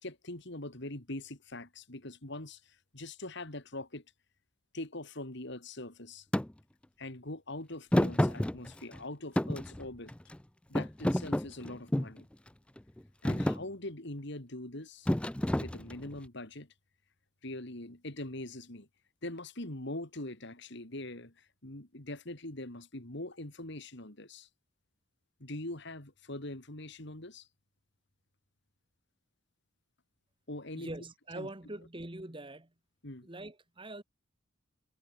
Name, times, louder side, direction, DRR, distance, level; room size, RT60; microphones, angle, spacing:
voice 1, 0.0-4.0 4.7-6.2 7.0-10.1 10.7-12.3 13.2-15.1 15.6-16.7 17.4-18.9 19.2-24.5 25.4-27.5 30.5-30.9 31.4-31.5 33.0-33.3, left 1 dB, 60° left, 3.2 m, -42 dB
Thump thud, 6.3-6.5 7.9-9.0 9.4-10.4 10.8-12.2 12.8-13.0 13.3-13.6 15.1-16.1, left 1 dB, 5° left, 0.4 m, -29 dB
voice 2, 30.7-32.7 33.2-34.0, right 1 dB, 25° right, 1.8 m, -43 dB
head